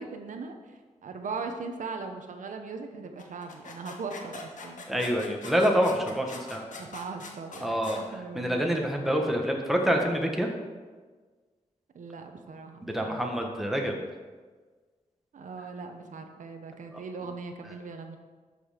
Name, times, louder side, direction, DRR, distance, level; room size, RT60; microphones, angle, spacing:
voice 1, 0.0-4.8 6.8-8.9 11.9-13.2 15.3-18.2, right 4 dB, 90° right, 5 dB, 0.9 m, -39 dB
sound 1, 3.2-8.0, left 4 dB, 85° left, 1.3 m, -43 dB
voice 2, 4.9-6.6 7.6-10.5 12.9-14.0 16.9-17.0, equal, ahead, 1 dB, 1.4 m, -27 dB
12.0 x 5.4 x 5.1 m, 1.4 s
wide cardioid pair, 105°, 13 cm